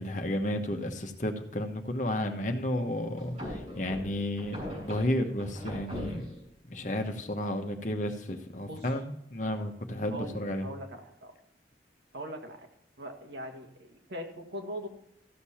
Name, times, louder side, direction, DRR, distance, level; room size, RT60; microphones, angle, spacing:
voice 1, 0.0-6.3 6.7-10.7, left 1 dB, 45° left, 5 dB, 1.1 m, -32 dB
sound 1, 3.2-6.5, equal, 40° right, 4.4 m, -40 dB
voice 2, 10.1-11.3 12.1-12.7 13.0-14.9, equal, 80° right, 2 dB, 1.8 m, -41 dB
14.0 x 6.8 x 4.3 m, 0.75 s
head